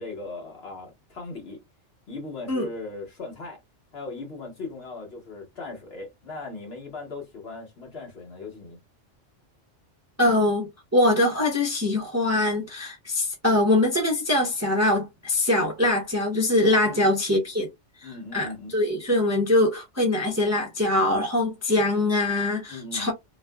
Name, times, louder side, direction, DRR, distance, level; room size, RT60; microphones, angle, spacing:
voice 1, 0.0-1.6 2.1-3.6 3.9-8.8 16.8-17.1 18.0-18.7 22.7-23.1, left 3 dB, 55° left, 1.5 m, -38 dB
voice 2, 10.2-17.7 18.0-23.1, left 1 dB, 15° right, 0.6 m, -23 dB
3.0 x 2.4 x 2.2 m
omnidirectional pair, 1.3 m